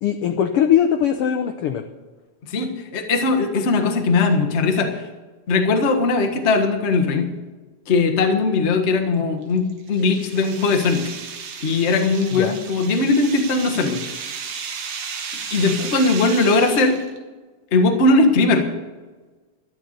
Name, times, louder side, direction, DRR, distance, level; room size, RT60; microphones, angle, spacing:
voice 1, 0.0-1.8 12.3-12.6, left 9 dB, 80° left, 6 dB, 1.3 m, -20 dB
voice 2, 2.5-5.1 5.5-7.3 7.9-11.0 11.6-14.0 15.5-17.0 17.7-18.7, left 3 dB, 45° left, 3 dB, 0.8 m, -19 dB
sound 1, 9.4-17.2, right 6 dB, 90° right, 3.1 m, -34 dB
12.5 x 11.5 x 6.5 m, 1.3 s
omnidirectional pair, 3.5 m